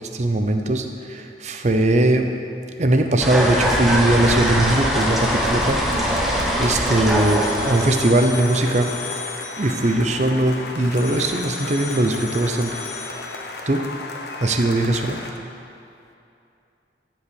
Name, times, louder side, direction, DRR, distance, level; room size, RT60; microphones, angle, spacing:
voice 1, 0.1-2.3 2.8-5.8 6.2-8.9 9.6-12.8 13.7-13.9 14.4-15.2, right 1 dB, 40° right, 5 dB, 0.7 m, -20 dB
sound 1, 3.2-8.2, equal, ahead, 1.0 m, -22 dB
sound 2, 3.5-15.3, left 2 dB, 60° left, 0.9 m, -34 dB
sound 3, 6.0-13.4, left 3 dB, 45° left, 1.5 m, -34 dB
12.0 x 5.5 x 7.0 m, 2.7 s
head